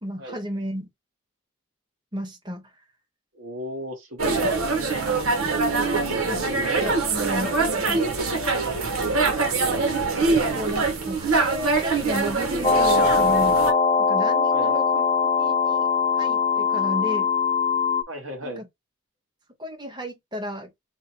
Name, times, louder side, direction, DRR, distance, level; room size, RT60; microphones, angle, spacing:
voice 1, 0.0-0.9 2.1-2.7 6.2-8.1 10.3-13.6 14.0-15.0 15.4-15.9 16.2-17.3 18.4-18.7 19.6-20.7, equal, 20° right, 1.0 m, -33 dB
voice 2, 3.3-4.7 6.4-6.6 7.8-8.0 14.5-14.7 18.1-18.6, equal, 65° right, 1.3 m, -35 dB
sound 1, 4.2-13.7, right 3 dB, 90° right, 1.1 m, -24 dB
sound 2, 12.6-18.0, left 5 dB, 25° left, 0.4 m, -21 dB
3.7 x 2.2 x 4.3 m
head